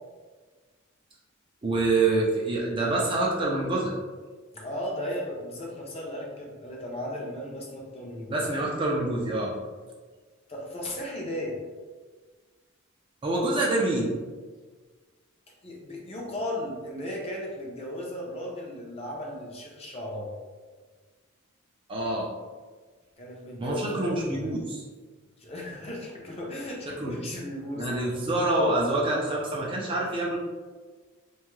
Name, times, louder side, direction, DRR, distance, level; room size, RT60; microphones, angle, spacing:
voice 1, 1.6-3.9 8.3-9.5 13.2-14.1 21.9-22.3 23.6-24.8 27.0-27.2 27.7-30.4, right 2 dB, 25° right, -3 dB, 0.3 m, -26 dB
voice 2, 4.5-8.5 10.5-11.6 15.6-20.3 23.2-24.5 25.4-28.1, left 1 dB, 30° left, -2 dB, 0.5 m, -36 dB
2.6 x 2.3 x 3.0 m, 1.4 s
head